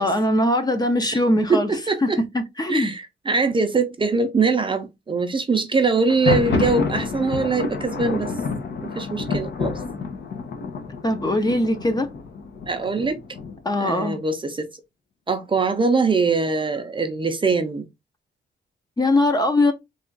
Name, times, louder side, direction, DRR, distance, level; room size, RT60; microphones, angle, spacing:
voice 1, 0.0-1.7 2.0-2.1 2.3-2.9 11.0-12.1 13.6-14.2 19.0-19.7, left 1 dB, 20° left, 0.6 m, -21 dB
voice 2, 1.5-2.2 2.7-8.3 8.8-9.7 12.7-13.2 13.8-14.7 15.3-17.9, right 4 dB, 25° right, 0.5 m, -22 dB
Thunder, 6.0-13.8, left 4 dB, 65° left, 0.8 m, -28 dB
3.3 x 2.3 x 3.9 m
wide cardioid pair, 155°, 20 cm